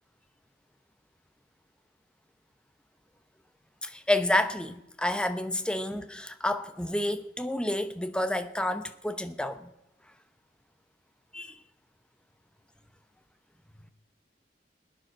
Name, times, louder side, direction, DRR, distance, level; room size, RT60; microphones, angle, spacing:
voice 1, 3.8-9.7 11.3-11.6, left 1 dB, 5° left, 0.7 m, -29 dB
21.5 x 9.4 x 6.2 m
head